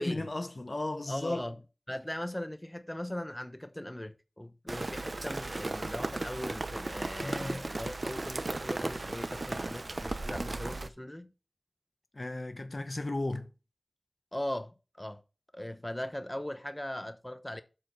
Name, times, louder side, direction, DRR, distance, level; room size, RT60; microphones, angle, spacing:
voice 1, 0.0-1.4 7.2-7.7 12.1-13.5, left 2 dB, 65° left, 0.8 m, -35 dB
voice 2, 1.1-1.6 1.9-11.3 14.3-15.2 15.5-17.6, left 1 dB, 20° left, 0.9 m, -39 dB
Rain, 4.7-10.9, right 2 dB, 65° right, 0.6 m, -36 dB
7.7 x 4.3 x 5.8 m
wide cardioid pair, 40°, 0 cm